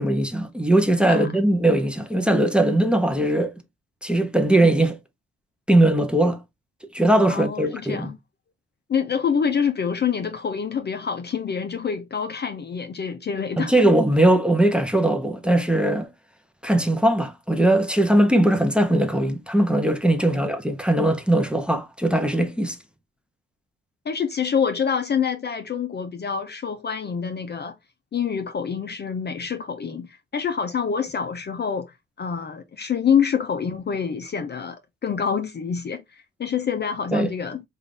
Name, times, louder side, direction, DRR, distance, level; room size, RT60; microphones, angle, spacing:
voice 1, 0.0-3.5 4.0-5.0 5.7-6.4 6.9-8.1 13.6-16.1 16.6-22.8 37.1-37.3, right 1 dB, 5° right, 0.7 m, -20 dB
voice 2, 1.1-1.4 7.3-8.2 8.9-13.7 20.2-20.5 24.1-27.8 28.1-37.6, left 7 dB, 35° left, 0.6 m, -26 dB
3.7 x 2.5 x 3.3 m
cardioid pair, 90°, 30 cm